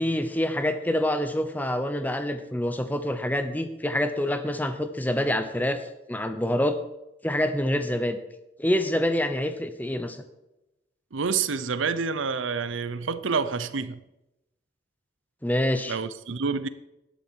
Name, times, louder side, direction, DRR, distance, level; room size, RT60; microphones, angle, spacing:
voice 1, 0.0-6.8 7.2-8.2 8.6-10.2 15.4-16.0, left 1 dB, 10° left, 0.9 m, -26 dB
voice 2, 11.1-14.0 15.9-16.7, right 5 dB, 90° right, 0.7 m, -28 dB
11.5 x 10.5 x 4.6 m
head